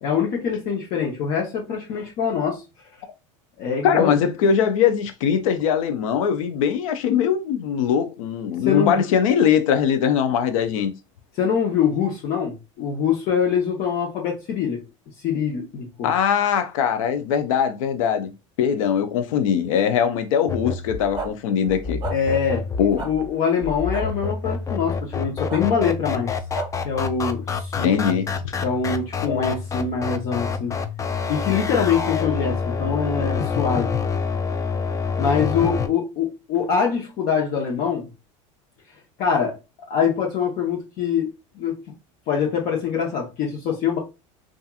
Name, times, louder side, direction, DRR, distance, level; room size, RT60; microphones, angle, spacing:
voice 1, 0.0-2.6 3.6-4.2 8.7-9.0 11.4-14.8 15.2-16.1 22.1-22.7 23.0-26.3 26.8-27.9 28.6-30.7 31.3-34.0 35.2-38.1 39.2-39.6 39.9-41.8 42.3-44.0, left 6 dB, 60° left, 0.8 m, -24 dB
voice 2, 3.8-10.9 16.0-18.3 18.6-22.0 22.8-23.1 27.8-28.5 29.3-29.5, left 8 dB, 85° left, 0.5 m, -21 dB
sound 1, 20.5-35.9, left 5 dB, 20° left, 0.3 m, -27 dB
sound 2, 21.1-21.3 22.0-22.2 23.0-23.1 23.9-24.0 25.5-25.6 26.5-26.7, right 4 dB, 25° right, 0.7 m, -30 dB
2.7 x 2.4 x 2.3 m
supercardioid pair, 100°, 17 cm